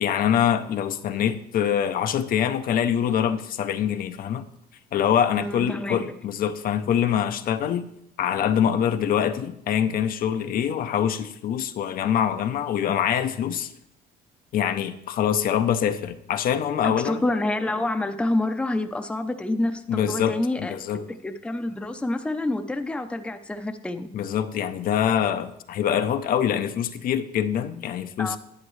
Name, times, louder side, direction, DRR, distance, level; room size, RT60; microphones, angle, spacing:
voice 1, 0.0-4.4 4.9-7.8 8.2-13.7 14.5-17.2 19.9-21.0 24.1-28.4, left 9 dB, 60° left, 9 dB, 0.6 m, -24 dB
voice 2, 5.4-6.1 16.8-20.8 21.1-24.1 28.2-28.4, left 2 dB, 5° left, 7 dB, 0.6 m, -27 dB
10.5 x 8.3 x 3.2 m, 0.76 s
cardioid pair, 110°, 17 cm